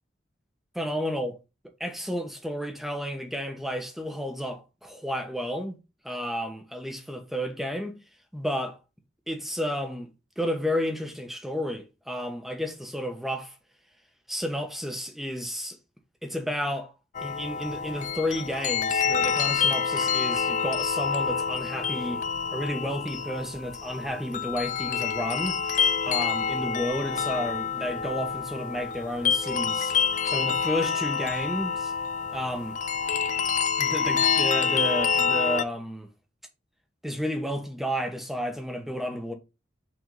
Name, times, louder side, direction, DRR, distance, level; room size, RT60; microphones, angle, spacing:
voice 1, 0.7-1.4 1.8-5.8 6.0-8.0 8.3-8.8 9.3-13.5 14.3-15.8 16.2-16.9 17.2-22.2 22.5-25.6 26.0-29.9 30.2-31.9 32.3-32.8 33.8-36.1 37.0-39.3, equal, ahead, 1.1 m, -31 dB
sound 1, 17.1-35.6, left 6 dB, 40° left, 0.4 m, -27 dB
6.1 x 3.6 x 5.3 m
head